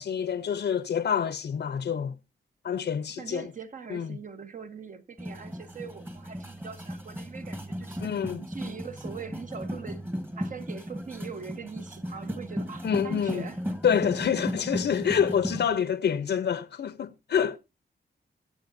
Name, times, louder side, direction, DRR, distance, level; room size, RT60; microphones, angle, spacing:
voice 1, 0.0-2.1 2.6-3.5 3.9-4.1 8.0-8.4 12.8-13.4 13.8-17.6, left 8 dB, 70° left, 0.8 m, -27 dB
voice 2, 3.2-8.1 8.4-10.0 10.4-13.6, right 6 dB, 45° right, 1.2 m, -42 dB
sound 1, 5.2-15.7, equal, 10° right, 1.4 m, -36 dB
21.5 x 7.6 x 2.7 m
wide cardioid pair, 145°, 18 cm